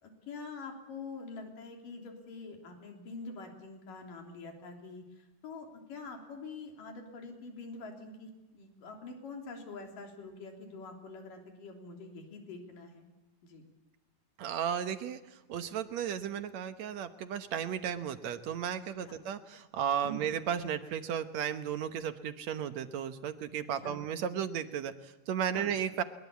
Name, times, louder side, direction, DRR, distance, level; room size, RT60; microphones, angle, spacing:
voice 1, 0.0-13.1 13.4-13.6 19.0-19.2 20.0-20.2 23.8-24.0 25.5-25.7, left 4 dB, 90° left, 3 dB, 5.1 m, -45 dB
voice 2, 14.4-15.2 15.5-26.0, right 8 dB, 65° right, 10 dB, 2.2 m, -34 dB
22.5 x 22.0 x 8.4 m, 1.1 s
omnidirectional pair, 3.7 m